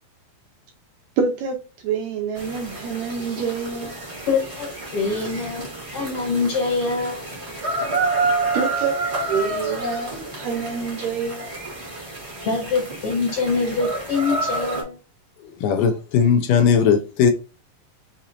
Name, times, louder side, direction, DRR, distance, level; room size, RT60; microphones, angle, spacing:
voice 1, 1.2-1.6 1.8-4.0 8.5-8.9 9.3-11.5, right 5 dB, 75° right, 1.8 m, -26 dB
sound 1, 2.3-14.8, right 2 dB, 40° right, 0.9 m, -29 dB
voice 2, 4.3-7.2 12.4-15.0, left 4 dB, 60° left, 1.6 m, -24 dB
voice 3, 15.6-17.3, left 7 dB, 80° left, 2.2 m, -18 dB
6.1 x 2.8 x 2.6 m
omnidirectional pair, 4.0 m